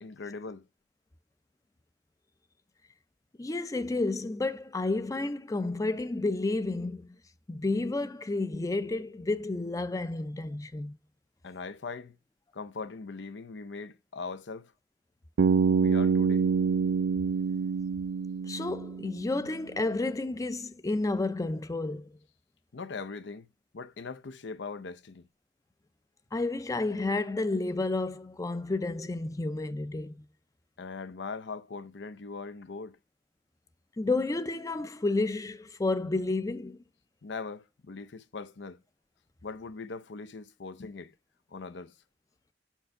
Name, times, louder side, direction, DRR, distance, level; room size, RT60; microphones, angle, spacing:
voice 1, 0.0-0.6 11.4-12.2 12.5-14.7 15.7-16.5 22.7-23.5 23.7-25.3 30.8-33.0 37.2-38.8 39.4-41.1 41.5-41.9, left 4 dB, 80° left, 0.6 m, -40 dB
voice 2, 3.4-7.1 7.5-10.9 18.5-22.1 26.3-30.2 34.0-36.8, left 2 dB, 20° left, 0.4 m, -31 dB
Bass guitar, 15.4-19.4, right 5 dB, 80° right, 0.4 m, -26 dB
5.8 x 4.6 x 6.4 m
head